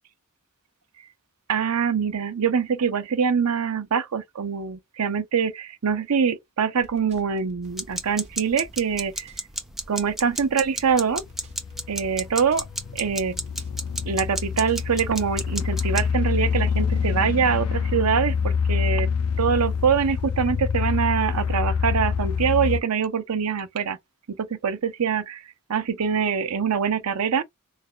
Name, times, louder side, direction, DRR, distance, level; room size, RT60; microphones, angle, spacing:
voice 1, 1.5-9.3 9.9-11.2 11.9-12.6 12.9-13.4 14.1-19.1 19.4-24.0 24.3-25.4 25.7-27.4, right 6 dB, 85° right, 0.6 m, -24 dB
sound 1, 6.8-15.5, right 1 dB, 30° right, 1.1 m, -51 dB
sound 2, 7.7-16.1, right 1 dB, ahead, 0.4 m, -32 dB
sound 3, 11.2-22.8, left 6 dB, 80° left, 0.4 m, -26 dB
3.4 x 2.2 x 3.8 m
head